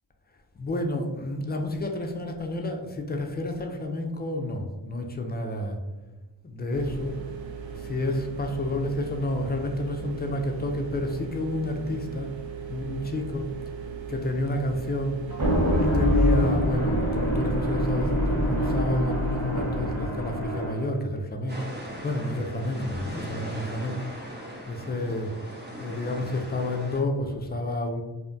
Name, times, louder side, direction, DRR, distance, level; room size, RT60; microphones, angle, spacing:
voice 1, 0.6-5.8 6.4-7.1 7.7-12.3 12.7-13.5 14.1-15.2 15.7-21.7 22.0-24.0 24.7-25.3 25.8-28.0, left 1 dB, 25° left, 3 dB, 0.3 m, -30 dB
sound 1, 6.7-16.6, right 6 dB, 70° right, 0.6 m, -38 dB
sound 2, 15.3-20.9, equal, 55° right, 1.2 m, -25 dB
sound 3, 21.5-27.0, equal, 20° right, 0.7 m, -39 dB
2.7 x 2.1 x 2.5 m, 1.2 s
cardioid pair, 55°, 47 cm